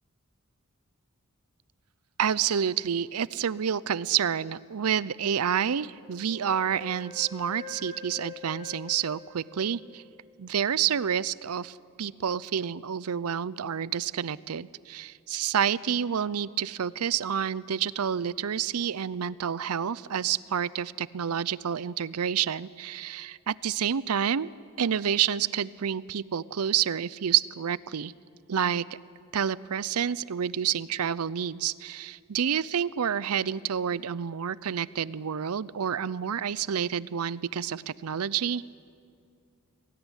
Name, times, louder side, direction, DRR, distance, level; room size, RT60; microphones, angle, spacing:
voice 1, 2.2-10.0 10.4-24.5 24.8-28.1 28.5-28.8 29.3-38.6, right 8 dB, 90° right, 19 dB, 0.6 m, -29 dB
Wind instrument woodwind instrument, 5.9-10.1, left 3 dB, 20° right, 5.3 m, -45 dB
22.5 x 17.0 x 10.0 m, 2.3 s
head